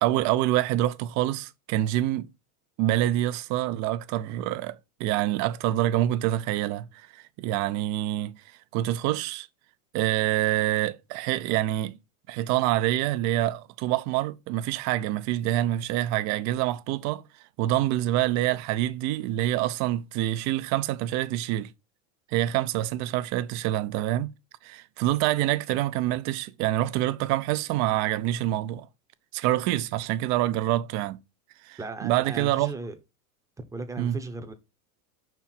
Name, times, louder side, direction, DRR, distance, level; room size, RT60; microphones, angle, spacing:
voice 1, 0.0-2.3 2.8-8.3 8.7-9.5 9.9-12.0 12.3-17.2 17.6-21.7 22.3-24.3 24.6-28.9 29.3-31.2 31.7-32.7 34.0-34.2, right 14 dB, 40° right, 0.6 m, -26 dB
voice 2, 31.8-33.0 33.6-34.5, right 3 dB, 5° right, 0.8 m, -36 dB
5.6 x 4.6 x 5.6 m
supercardioid pair, 135°, 46 cm